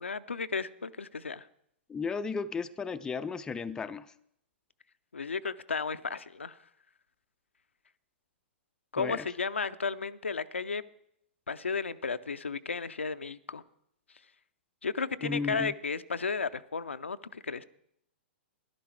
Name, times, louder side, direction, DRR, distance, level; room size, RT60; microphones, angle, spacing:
voice 1, 0.0-1.5 5.1-6.6 8.9-10.8 11.5-13.6 14.8-17.6, left 5 dB, 85° left, 12 dB, 0.5 m, -34 dB
voice 2, 1.9-4.1 9.0-9.2 15.2-15.7, left 5 dB, 10° left, 10 dB, 0.4 m, -34 dB
11.5 x 11.5 x 4.5 m, 0.73 s
figure-of-eight pair, 115°, 6 cm